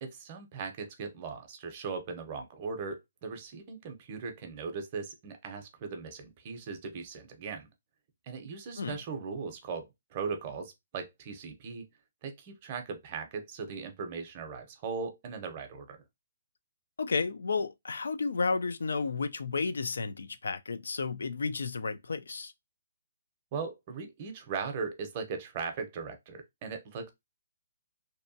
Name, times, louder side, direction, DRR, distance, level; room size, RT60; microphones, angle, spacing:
voice 1, 0.0-7.7 8.3-11.9 12.2-16.0 23.5-27.1, right 5 dB, 30° right, 0.6 m, -39 dB
voice 2, 17.0-22.5, left 4 dB, 85° left, 0.4 m, -32 dB
2.7 x 2.2 x 2.6 m
hypercardioid pair, 165°, 0 cm